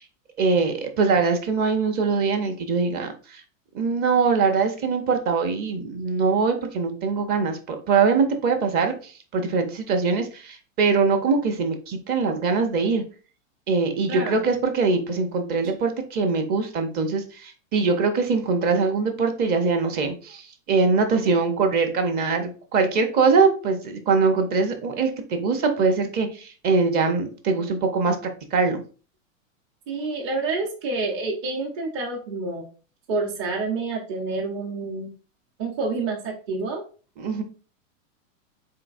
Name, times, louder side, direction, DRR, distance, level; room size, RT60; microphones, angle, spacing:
voice 1, 0.4-3.4 3.7-13.0 13.7-28.2 28.5-28.8 37.2-37.4, right 4 dB, 25° right, 6 dB, 0.6 m, -22 dB
voice 2, 14.1-14.4 15.6-15.7 29.9-32.7 33.1-35.1 35.6-36.8, right 3 dB, 40° right, -1 dB, 0.9 m, -28 dB
4.0 x 3.7 x 2.5 m, 0.37 s
hypercardioid pair, 140°, 40 cm